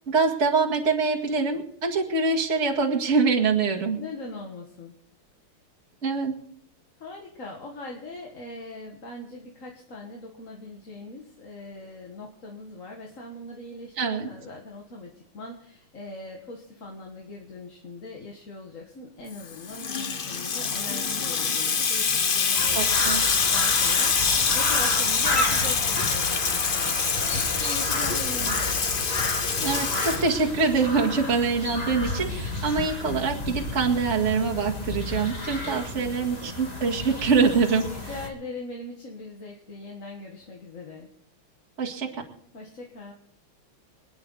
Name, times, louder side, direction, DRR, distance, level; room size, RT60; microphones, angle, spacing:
voice 1, 0.1-4.0 6.0-6.3 14.0-14.3 22.7-23.2 29.6-37.9 41.8-42.2, right 4 dB, 35° right, -2 dB, 2.2 m, -24 dB
voice 2, 4.0-4.9 7.0-28.8 35.6-36.6 37.9-41.1 42.5-43.1, left 2 dB, 40° left, 0 dB, 1.8 m, -41 dB
Water tap faucet / Sink (filling or washing), 19.4-30.8, left 5 dB, 60° left, 0.5 m, -25 dB
sound 1, 22.6-38.3, left 2 dB, 20° left, 1.8 m, -32 dB
26.5 x 9.8 x 4.0 m, 0.66 s
omnidirectional pair, 2.3 m